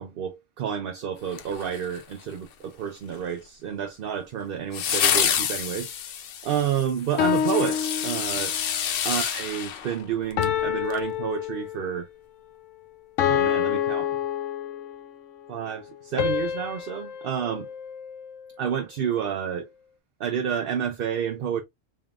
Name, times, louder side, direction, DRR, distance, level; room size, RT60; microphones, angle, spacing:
voice 1, 0.0-5.9 6.4-8.6 9.1-12.1 13.2-14.2 15.5-17.7 18.6-19.7 20.2-21.6, right 8 dB, 60° right, 0.6 m, -30 dB
sound 1, 1.3-2.2 4.7-10.6 10.9-11.0, left 9 dB, 60° left, 0.7 m, -28 dB
sound 2, 7.2-8.7 10.4-12.0 13.2-15.1 16.2-18.5, left 9 dB, 85° left, 1.0 m, -27 dB
3.6 x 3.6 x 2.3 m
omnidirectional pair, 1.3 m